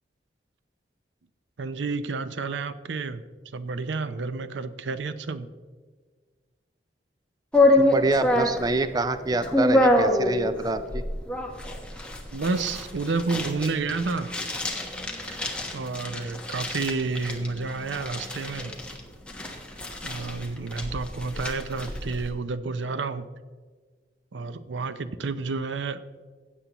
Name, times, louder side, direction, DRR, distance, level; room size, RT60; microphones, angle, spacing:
voice 1, 1.6-3.2 3.5-5.5 12.3-14.4 15.3-15.4 15.7-18.7 20.0-23.3 24.3-26.0, right 4 dB, 85° right, 0.6 m, -30 dB
sound 1, 7.5-22.3, left 1 dB, 5° left, 1.1 m, -26 dB
voice 2, 7.8-11.0, right 2 dB, 20° right, 0.4 m, -26 dB
16.0 x 8.4 x 3.0 m
head